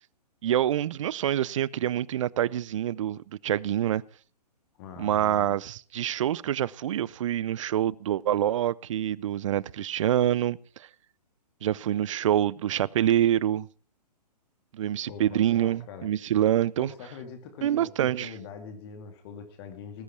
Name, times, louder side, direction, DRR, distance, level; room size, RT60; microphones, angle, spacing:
voice 1, 0.4-4.0 5.0-10.6 11.6-13.7 14.7-16.9 17.6-18.3, right 11 dB, 50° right, 0.6 m, -26 dB
voice 2, 4.8-5.6 15.1-16.1 16.8-20.0, left 6 dB, 35° left, 2.4 m, -43 dB
19.0 x 8.2 x 5.9 m
figure-of-eight pair, 130°, 21 cm